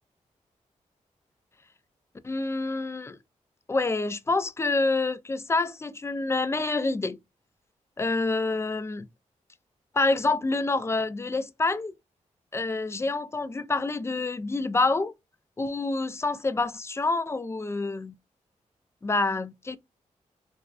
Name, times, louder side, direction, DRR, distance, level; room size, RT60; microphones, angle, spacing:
voice 1, 2.2-3.2 3.7-7.2 8.0-9.1 9.9-11.9 12.5-15.1 15.6-18.1 19.0-19.8, left 3 dB, 20° left, 0.3 m, -27 dB
2.5 x 2.2 x 2.3 m
cardioid pair, 45°, 14 cm